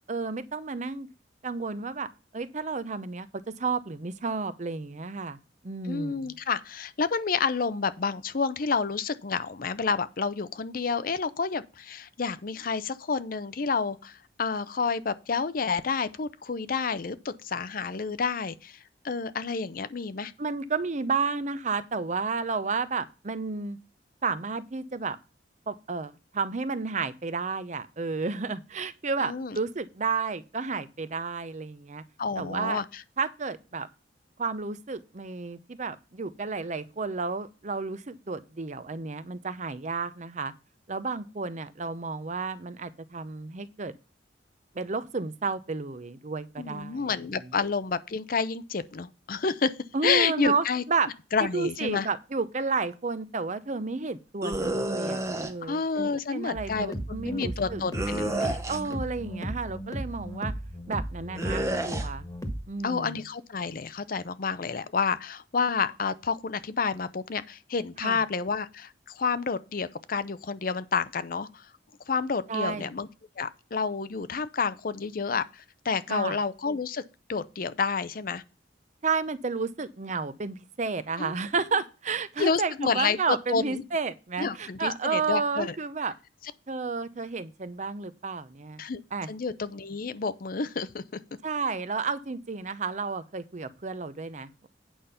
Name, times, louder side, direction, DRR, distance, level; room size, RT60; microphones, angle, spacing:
voice 1, 0.1-1.1 1.4-2.1 2.3-5.4 5.6-6.4 20.4-23.8 24.2-25.2 25.7-32.0 32.4-32.8 33.2-33.9 34.4-40.5 40.9-43.9 44.7-47.1 49.9-51.1 51.4-57.8 58.7-60.5 60.9-62.3 62.7-63.2 68.0-68.2 72.5-73.0 76.1-76.4 79.0-86.1 86.7-88.8 89.1-89.3 91.4-94.7, right 4 dB, 40° right, 0.7 m, -31 dB
voice 2, 5.8-18.8 19.0-20.3 29.2-29.6 32.2-33.0 46.6-49.7 50.0-50.8 51.3-52.1 55.6-58.6 62.8-71.6 72.1-73.1 73.4-77.0 77.3-78.4 81.2-81.4 82.4-83.8 84.4-85.7 88.8-89.0 89.3-91.0, left 5 dB, 50° left, 0.6 m, -29 dB
sound 1, 54.4-55.5 57.9-59.0 61.4-62.1, right 1 dB, 15° right, 0.9 m, -30 dB
sound 2, 56.6-62.7, equal, 20° left, 1.5 m, -36 dB
8.8 x 5.2 x 5.7 m
head